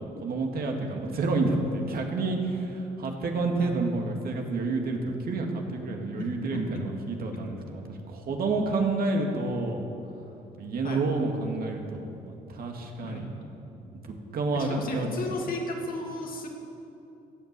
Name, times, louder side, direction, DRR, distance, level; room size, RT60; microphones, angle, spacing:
voice 1, 0.0-9.8 10.6-13.3 14.0-15.1, right 3 dB, 60° right, 2 dB, 2.1 m, -29 dB
voice 2, 6.2-6.8 7.3-7.4 10.8-11.0 13.0-13.3 14.5-16.5, left 2 dB, 55° left, 1 dB, 2.6 m, -35 dB
15.5 x 8.3 x 7.6 m, 2.8 s
supercardioid pair, 60°, 17 cm